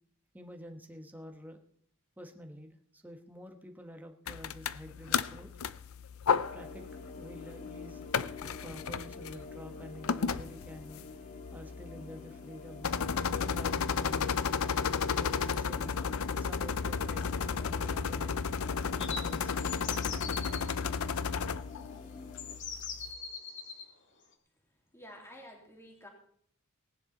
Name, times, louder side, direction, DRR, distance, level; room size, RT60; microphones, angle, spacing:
voice 1, 0.3-1.6 2.2-5.5 6.5-8.0 8.6-11.0 11.5-14.5 15.2-18.4 18.9-19.7, equal, 10° right, 4 dB, 1.3 m, -49 dB
sound 1, 4.3-23.1, left 6 dB, 85° left, 0.6 m, -34 dB
sound 2, 6.3-22.6, left 4 dB, 40° left, 1.9 m, -48 dB
sound 3, 19.0-20.6 21.7-21.8 22.4-23.9, left 5 dB, 60° left, 2.1 m, -41 dB
voice 2, 24.9-26.1, equal, 15° left, 1 dB, 2.9 m, -50 dB
18.5 x 10.0 x 4.2 m, 0.63 s
head